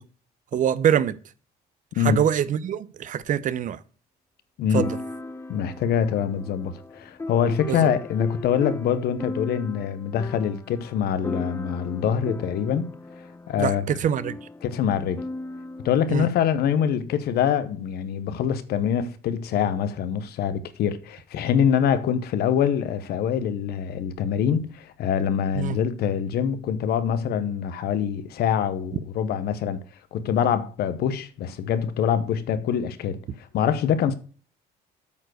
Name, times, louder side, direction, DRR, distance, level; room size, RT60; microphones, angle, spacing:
voice 1, 0.5-1.2 2.0-3.8 4.7-5.0 7.7-7.9 13.6-14.4 16.1-16.3 25.5-25.8, right 9 dB, 50° right, 0.6 m, -24 dB
sound 1, 3.2-3.3 4.7-16.0, left 2 dB, 15° left, 0.6 m, -37 dB
voice 2, 5.5-12.9 13.5-14.0 14.6-15.3 15.8-29.8 30.1-34.1, left 8 dB, 70° left, 0.9 m, -24 dB
8.5 x 4.6 x 6.2 m
cardioid pair, 110°, 17 cm